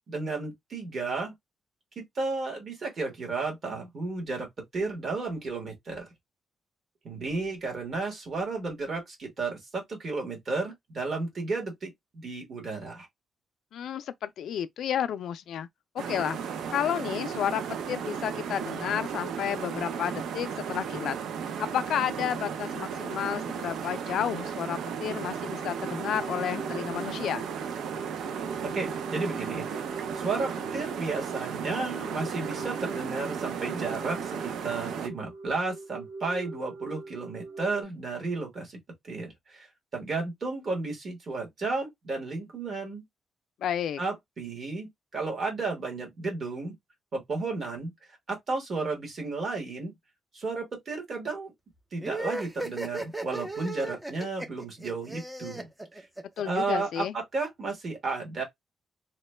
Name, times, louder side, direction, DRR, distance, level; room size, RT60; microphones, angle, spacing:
voice 1, 0.0-1.3 2.0-4.5 4.7-6.1 7.0-13.1 28.7-29.6 30.1-38.8 39.1-39.7 39.9-43.0 44.0-46.7 47.1-47.9 48.3-49.9 50.3-51.5 51.9-56.1 56.4-58.4, right 3 dB, 40° right, 1.3 m, -33 dB
voice 2, 13.7-15.7 16.1-21.2 21.6-27.5 43.6-44.0 56.4-57.1, left 9 dB, 70° left, 0.3 m, -31 dB
sound 1, 16.0-35.1, right 7 dB, 85° right, 0.5 m, -35 dB
sound 2, 25.5-37.8, right 3 dB, 65° right, 1.2 m, -43 dB
sound 3, 52.0-56.6, right 2 dB, 5° right, 0.4 m, -36 dB
2.9 x 2.2 x 3.2 m
wide cardioid pair, 170°, 0 cm